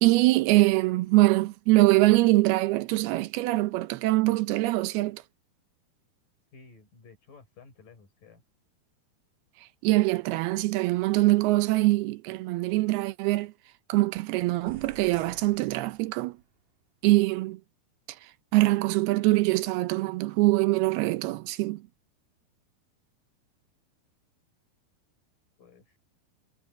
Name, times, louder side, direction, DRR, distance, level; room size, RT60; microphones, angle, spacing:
voice 1, 0.0-5.2 9.8-13.5 13.9-16.4 17.0-17.6 18.5-21.8, right 19 dB, 80° right, 2.8 m, -23 dB
voice 2, 6.5-8.4 25.6-26.0, left 4 dB, 55° left, 6.8 m, -53 dB
sound 1, 14.7-16.5, right 7 dB, 55° right, 3.2 m, -49 dB
omnidirectional pair, 4.5 m